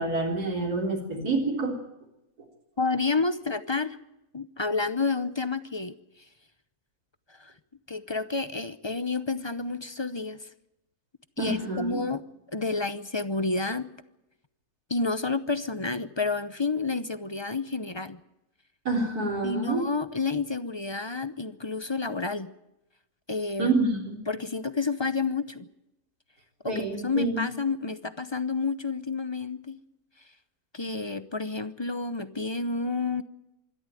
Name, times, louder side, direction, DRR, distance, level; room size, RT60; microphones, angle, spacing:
voice 1, 0.0-1.8 11.4-12.0 18.9-19.8 23.6-24.2 26.7-27.4, right 3 dB, 90° right, -1 dB, 4.3 m, -27 dB
voice 2, 2.8-4.0 4.3-5.9 7.3-7.5 7.9-10.5 11.4-12.2 12.5-13.9 14.9-18.2 19.4-22.5 23.3-23.7 24.3-25.7 26.6-29.8 30.7-33.2, left 4 dB, 25° left, 13 dB, 0.6 m, -30 dB
25.0 x 13.0 x 9.1 m, 0.91 s
omnidirectional pair, 1.6 m